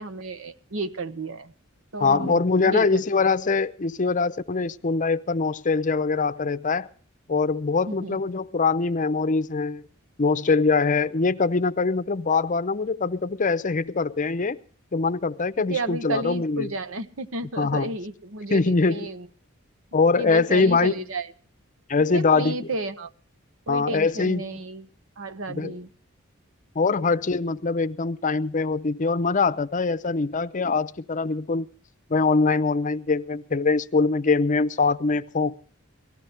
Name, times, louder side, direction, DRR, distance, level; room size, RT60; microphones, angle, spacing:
voice 1, 0.0-1.5 1.9-3.0 7.9-8.2 15.7-19.3 20.2-21.3 22.0-23.1 23.7-24.9 25.2-25.9, right 2 dB, 70° right, 1.0 m, -32 dB
voice 2, 2.0-6.9 7.3-9.8 10.2-14.6 14.9-16.7 17.6-17.9 18.5-19.1 19.9-20.9 21.9-22.7 23.7-24.6 25.5-25.7 26.8-31.7 32.1-35.5, left 4 dB, 40° left, 0.6 m, -23 dB
19.0 x 14.5 x 3.4 m
head